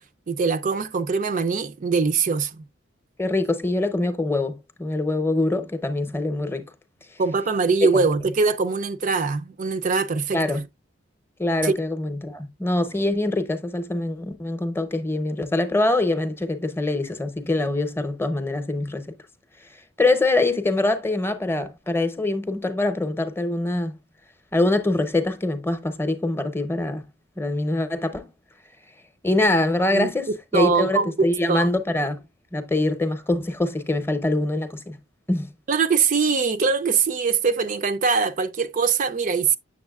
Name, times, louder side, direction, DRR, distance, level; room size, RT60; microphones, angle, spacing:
voice 1, 0.3-2.6 7.2-10.6 11.6-11.8 29.9-30.1 30.5-31.7 35.7-39.6, right 5 dB, 40° right, 0.4 m, -22 dB
voice 2, 3.2-6.7 7.9-8.0 10.3-10.6 11.4-19.1 20.0-24.0 24.5-27.0 27.4-28.3 29.2-32.2 32.5-35.0 35.3-35.5, left 2 dB, 10° left, 0.7 m, -24 dB
7.2 x 6.8 x 2.3 m
head